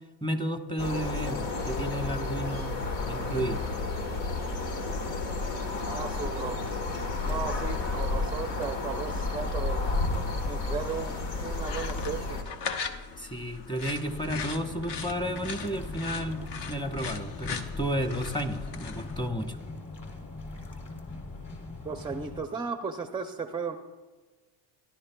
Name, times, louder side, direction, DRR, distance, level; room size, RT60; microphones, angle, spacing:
voice 1, 0.2-2.8 3.1-3.6 13.2-16.4 16.7-19.6, right 1 dB, 10° left, 6 dB, 1.0 m, -32 dB
sound 1, 0.8-12.4, left 3 dB, 85° left, 1.4 m, -31 dB
voice 2, 5.9-6.6 7.2-10.0 10.5-12.4 21.8-23.8, right 5 dB, 10° right, 7 dB, 0.4 m, -35 dB
sound 2, 10.9-19.3, left 5 dB, 55° left, 1.0 m, -39 dB
sound 3, 14.3-22.4, left 2 dB, 30° left, 2.9 m, -41 dB
16.0 x 11.0 x 2.3 m, 1.3 s
supercardioid pair, 90°, 49 cm